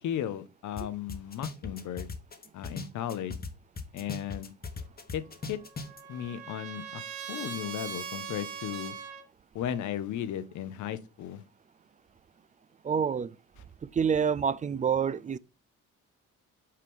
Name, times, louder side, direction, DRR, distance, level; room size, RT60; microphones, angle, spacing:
voice 1, 0.0-2.1 2.5-3.4 3.9-4.5 5.1-5.2 5.5-5.6 6.1-8.9 9.5-11.4, left 10 dB, 75° left, 0.8 m, -35 dB
sound 1, 0.8-0.9 1.1-3.5 3.8-6.0, left 4 dB, 30° left, 1.1 m, -38 dB
Trumpet, 5.3-9.2, right 7 dB, 90° right, 1.2 m, -41 dB
voice 2, 12.8-13.4 13.8-15.4, right 7 dB, 25° right, 0.3 m, -27 dB
5.7 x 4.8 x 3.6 m
cardioid pair, 90°, 30 cm